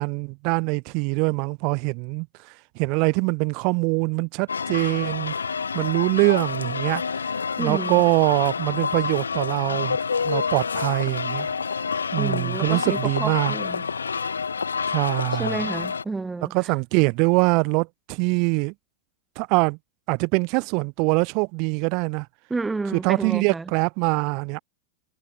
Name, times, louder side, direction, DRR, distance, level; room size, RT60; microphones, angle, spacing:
voice 1, 0.0-2.3 2.7-5.3 5.7-7.2 7.6-10.0 10.2-11.5 12.1-13.6 14.9-15.6 16.5-18.7 19.4-19.8 20.1-22.3 22.9-24.6, right 33 dB, 45° right, 0.9 m, -23 dB
sound 1, 4.5-16.0, left 5 dB, 75° left, 1.0 m, -28 dB
voice 2, 7.6-8.0 12.2-13.8 15.3-16.5 22.5-23.7, right 3 dB, 10° right, 3.3 m, -30 dB
figure-of-eight pair, 90°, 0 cm